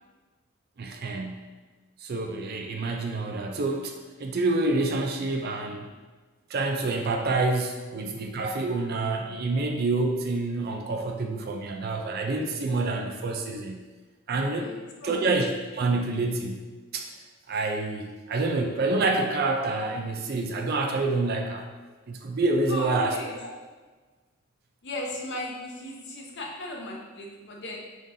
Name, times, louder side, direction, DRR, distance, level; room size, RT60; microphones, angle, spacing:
voice 1, 0.8-1.4 2.0-5.9 6.5-13.8 14.3-14.7 15.0-16.6 16.9-17.1 17.5-21.7 22.1-23.2, right 2 dB, 45° right, 3 dB, 0.4 m, -27 dB
voice 2, 14.4-15.2 22.6-23.6 24.8-27.8, left 1 dB, 50° left, -1 dB, 0.7 m, -37 dB
5.1 x 3.8 x 2.7 m, 1.3 s
head